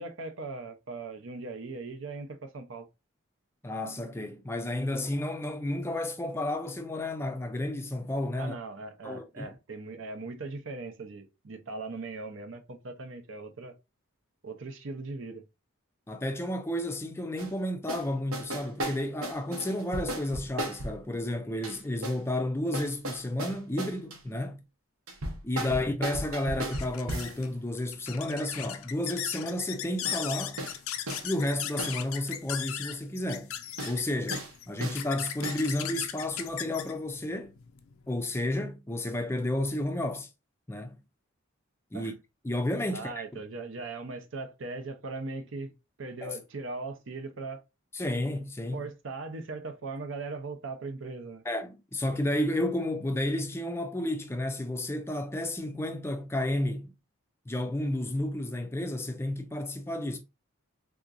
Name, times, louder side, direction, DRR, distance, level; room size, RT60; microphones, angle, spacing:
voice 1, 0.0-2.9 8.4-13.7 14.4-15.4 25.6-25.8 41.9-42.1 42.9-45.7 46.0-47.6 48.7-51.4, right 3 dB, 65° right, 0.6 m, -39 dB
voice 2, 3.6-8.5 9.0-9.5 16.1-24.6 25.4-30.6 31.2-33.5 33.9-37.5 38.1-40.3 40.7-41.0 41.9-42.1 42.4-43.1 46.2-46.4 47.9-48.9 51.5-56.9 57.5-60.2, left 1 dB, 10° left, 0.4 m, -31 dB
sound 1, 17.4-17.5 17.9-18.1 18.3-21.0 21.6-22.2 22.7-24.2 25.1-27.4 30.0-30.2 30.6-30.8 31.1-31.3 31.8-32.0 33.8-34.0 34.3-34.5 34.8-35.0 35.4-35.7, right 1 dB, 90° right, 1.0 m, -36 dB
sound 2, 25.6-38.5, left 10 dB, 85° left, 0.4 m, -38 dB
3.6 x 2.9 x 2.4 m
head